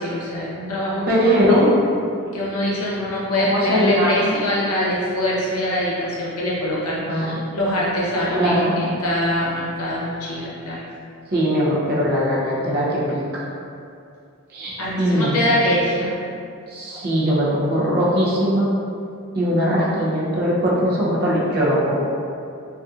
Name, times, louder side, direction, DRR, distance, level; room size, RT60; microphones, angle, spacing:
voice 1, 0.0-1.6 2.3-7.2 7.5-10.8 14.8-16.1, left 1 dB, 85° left, -6 dB, 0.7 m, -24 dB
voice 2, 1.1-1.7 3.4-4.4 7.1-7.5 8.1-8.8 11.3-13.4 14.5-15.4 16.7-18.7 19.3-22.0, equal, 45° right, -6 dB, 0.5 m, -20 dB
2.7 x 2.4 x 2.4 m, 2.4 s
head